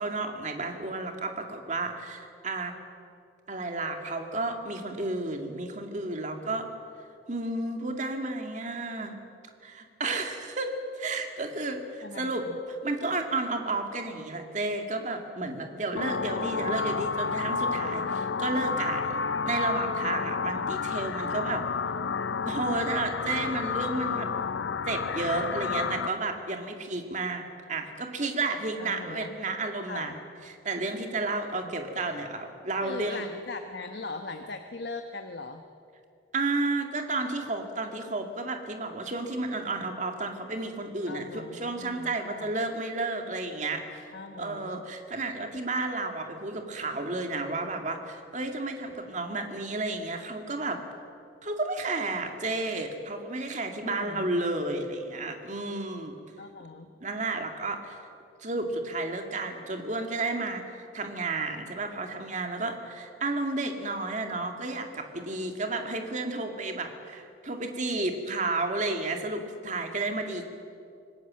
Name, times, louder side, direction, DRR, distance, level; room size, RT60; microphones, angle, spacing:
voice 1, 0.0-2.7 3.5-6.7 7.3-9.1 9.6-21.6 22.5-24.3 24.8-27.4 27.7-30.2 30.4-33.2 36.3-44.0 44.4-50.8 51.4-56.1 57.0-58.0 58.4-70.5, right 2 dB, 40° right, 4 dB, 2.3 m, -32 dB
voice 2, 12.0-12.6 28.8-29.3 29.9-30.2 31.6-31.8 32.8-35.6 41.1-42.5 44.1-44.8 53.8-54.3 56.4-56.9, left 3 dB, 65° left, 5 dB, 1.2 m, -40 dB
sound 1, 16.0-26.1, left 5 dB, 90° left, 0.6 m, -30 dB
26.5 x 19.0 x 7.6 m, 2.4 s
head